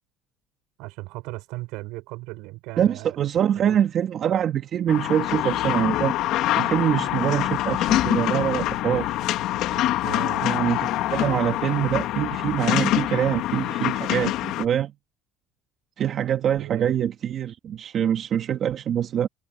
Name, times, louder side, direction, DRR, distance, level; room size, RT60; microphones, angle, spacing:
voice 1, 0.8-3.2 3.5-3.8 9.7-10.5 16.6-17.0, right 22 dB, 80° right, 4.9 m, -37 dB
voice 2, 2.8-6.1 6.6-9.2 10.4-14.9 16.0-19.3, right 9 dB, 45° right, 1.5 m, -24 dB
sound 1, 4.9-14.6, left 14 dB, 70° left, 1.9 m, -25 dB
cardioid pair, 110°, 0 cm